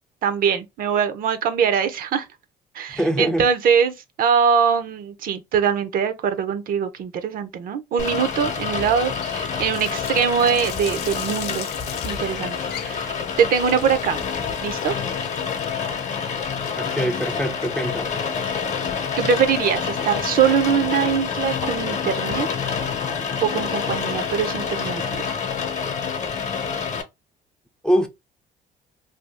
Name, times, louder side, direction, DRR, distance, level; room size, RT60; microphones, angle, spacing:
voice 1, 0.2-2.3 2.7-11.7 12.0-14.2 14.6-14.9 18.4-18.5 19.2-22.5 23.4-25.4, right 7 dB, 55° right, 0.6 m, -22 dB
voice 2, 2.9-3.5 16.7-18.2 27.8-28.1, equal, 5° left, 0.4 m, -23 dB
Rain, 8.0-27.0, left 6 dB, 45° left, 0.8 m, -27 dB
Water tap faucet, 9.2-18.1, left 11 dB, 80° left, 0.4 m, -39 dB
2.7 x 2.3 x 3.3 m
cardioid pair, 110°, 17 cm